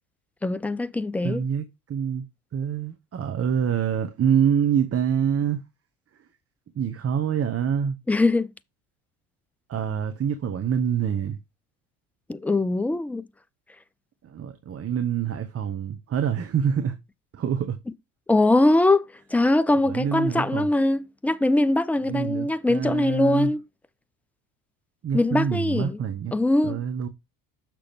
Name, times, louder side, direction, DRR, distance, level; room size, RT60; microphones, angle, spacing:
voice 1, 0.4-1.4 8.1-8.5 12.3-13.2 18.3-23.6 25.1-26.0 26.3-26.8, left 2 dB, 5° left, 0.3 m, -22 dB
voice 2, 1.2-2.2 2.5-5.6 6.7-8.0 9.7-11.4 14.2-17.0 17.3-17.8 19.8-20.7 22.1-23.5 25.0-26.3 26.6-27.1, right 8 dB, 30° right, 1.1 m, -26 dB
6.6 x 6.0 x 3.6 m
hypercardioid pair, 75°, 44 cm